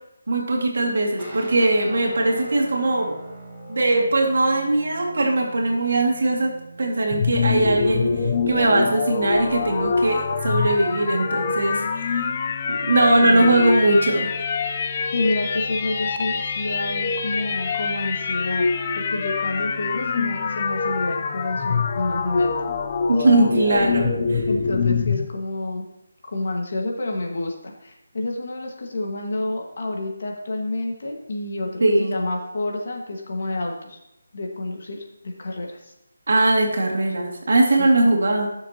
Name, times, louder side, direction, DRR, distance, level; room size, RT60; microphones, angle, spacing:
voice 1, 0.3-3.2 3.7-8.1 8.5-12.2 12.7-14.3 23.1-24.4 31.8-32.2 36.3-38.5, right 2 dB, 60° right, 1 dB, 2.0 m, -20 dB
sound 1, 1.2-10.9, right 1 dB, 5° right, 1.6 m, -43 dB
sound 2, 7.1-25.3, left 5 dB, 30° left, 0.5 m, -25 dB
voice 2, 13.2-13.6 15.1-18.6 18.9-22.5 23.8-23.9 24.5-25.8 26.3-34.0 34.3-35.9 37.8-38.1, left 2 dB, 50° left, 1 dB, 1.6 m, -29 dB
12.0 x 6.6 x 2.9 m, 0.85 s
figure-of-eight pair, 170°, 0 cm